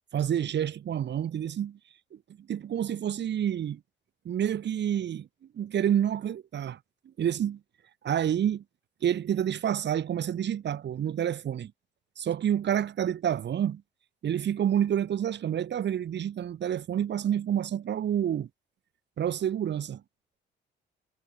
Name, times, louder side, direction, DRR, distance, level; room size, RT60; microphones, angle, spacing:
voice 1, 0.1-1.8 2.1-3.8 4.2-5.3 5.5-6.8 7.2-7.6 8.0-8.6 9.0-11.7 12.2-13.8 14.2-18.5 19.2-20.0, right 9 dB, 60° right, 2.7 m, -28 dB
cardioid pair, 90°, 20 cm